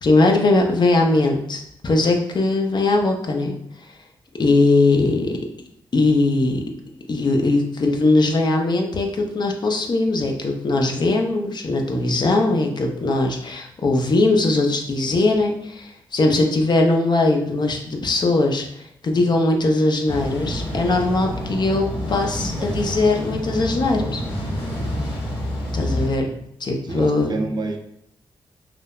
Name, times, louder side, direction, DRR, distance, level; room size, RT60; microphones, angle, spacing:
voice 1, 0.0-3.5 4.4-5.7 5.9-6.6 7.1-24.2 25.7-26.3 26.6-27.3, left 2 dB, 50° left, 3 dB, 0.5 m, -20 dB
sound 1, 20.1-26.1, equal, 90° left, 1.4 m, -28 dB
voice 2, 26.9-27.8, right 3 dB, 50° right, 3 dB, 0.5 m, -28 dB
3.1 x 2.0 x 2.3 m, 0.74 s
cardioid pair, 50°, 10 cm